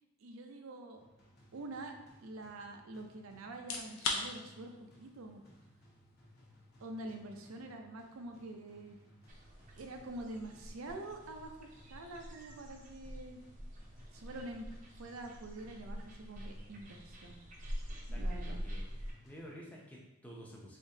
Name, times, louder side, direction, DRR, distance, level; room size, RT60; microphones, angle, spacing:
voice 1, 0.2-1.0 1.5-1.9 2.2-5.4 6.8-9.0 9.7-13.4 14.1-14.7 15.0-17.4 18.1-18.6, right 2 dB, 85° right, 4 dB, 0.5 m, -46 dB
sound 1, 1.0-20.0, equal, 45° left, 0.9 m, -62 dB
sound 2, 3.5-18.4, left 4 dB, 85° left, 0.6 m, -48 dB
sound 3, 9.3-19.1, equal, 40° right, 0.5 m, -45 dB
voice 2, 17.9-18.9 19.2-20.8, equal, 5° left, -3 dB, 0.5 m, -51 dB
3.5 x 3.5 x 2.8 m, 1.0 s
head